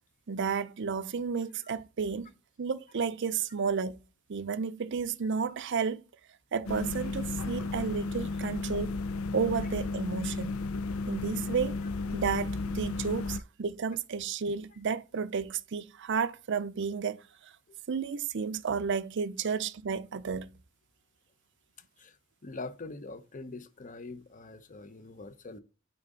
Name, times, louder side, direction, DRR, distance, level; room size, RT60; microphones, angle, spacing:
voice 1, 0.3-2.3 2.6-4.0 4.3-6.0 6.5-8.9 9.3-10.5 11.1-11.8 12.1-17.2 17.9-20.5, right 6 dB, 60° right, 0.5 m, -32 dB
sound 1, 6.6-13.4, left 3 dB, 90° left, 0.5 m, -34 dB
voice 2, 22.4-25.6, left 3 dB, 40° left, 0.8 m, -43 dB
9.0 x 4.1 x 3.7 m
head